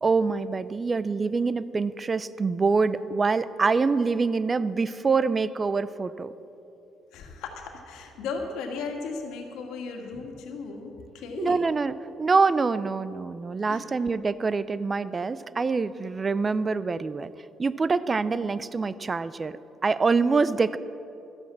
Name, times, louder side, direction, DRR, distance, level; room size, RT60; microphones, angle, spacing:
voice 1, 0.0-6.3 11.4-17.3 17.6-19.6 19.8-20.8, right 4 dB, 30° right, 16 dB, 0.4 m, -25 dB
voice 2, 7.1-11.6 13.7-13.9, left 4 dB, 80° left, 3 dB, 1.7 m, -36 dB
12.5 x 8.3 x 7.5 m, 2.8 s
cardioid pair, 85°, 0 cm